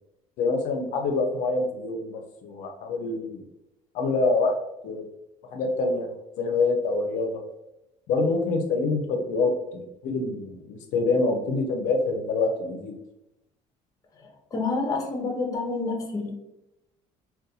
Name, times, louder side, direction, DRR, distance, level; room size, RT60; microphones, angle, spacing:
voice 1, 0.4-3.5 3.9-4.5 4.8-5.1 5.5-6.1 6.4-7.4 8.1-13.0, left 3 dB, 70° left, 3 dB, 0.5 m, -26 dB
voice 2, 14.5-16.4, left 3 dB, 25° left, 2 dB, 0.6 m, -28 dB
3.9 x 2.2 x 2.7 m, 0.88 s
cardioid pair, 155°, 13 cm